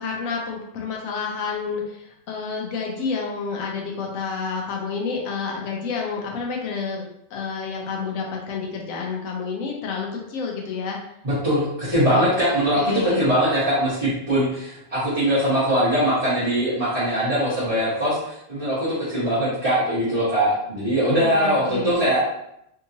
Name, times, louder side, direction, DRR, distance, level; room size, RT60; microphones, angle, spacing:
voice 1, 0.0-7.0 7.3-11.0 12.1-12.3 12.8-13.3 21.2-22.0, left 5 dB, 90° left, 0 dB, 1.1 m, -29 dB
voice 2, 11.2-22.2, equal, 25° right, -14 dB, 1.4 m, -21 dB
3.6 x 2.8 x 2.7 m, 0.77 s
omnidirectional pair, 1.3 m